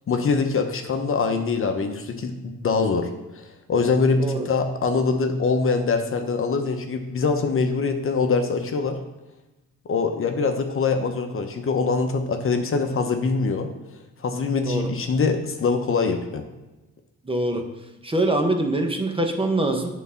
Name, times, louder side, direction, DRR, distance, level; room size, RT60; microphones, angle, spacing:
voice 1, 0.1-2.4 2.6-3.1 3.3-9.0 9.8-13.7 14.2-16.4, left 4 dB, 45° left, 5 dB, 1.0 m, -23 dB
voice 2, 17.2-17.7 18.0-19.9, right 1 dB, 20° right, 3 dB, 1.1 m, -23 dB
9.0 x 4.1 x 5.7 m, 1.1 s
cardioid pair, 90°, 30 cm